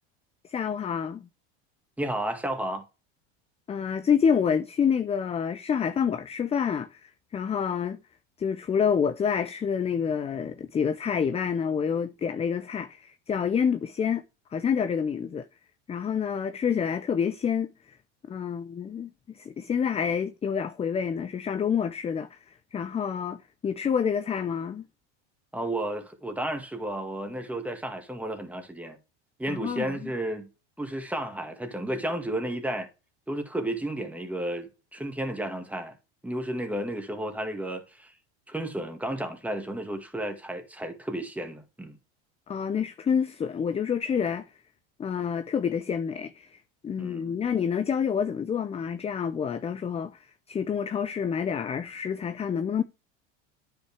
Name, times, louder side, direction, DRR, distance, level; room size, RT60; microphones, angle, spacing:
voice 1, 0.5-1.3 3.7-8.0 8.4-14.2 14.5-15.4 15.9-18.0 18.3-24.9 29.5-30.1 42.5-44.5 45.0-52.8, left 7 dB, 20° left, 0.5 m, -28 dB
voice 2, 2.0-2.8 25.5-29.0 29.4-30.5 30.8-32.9 33.3-35.9 36.2-38.1 38.5-42.0 47.0-47.4, right 1 dB, 5° right, 2.0 m, -32 dB
9.8 x 5.8 x 3.3 m
supercardioid pair, 105°, 34 cm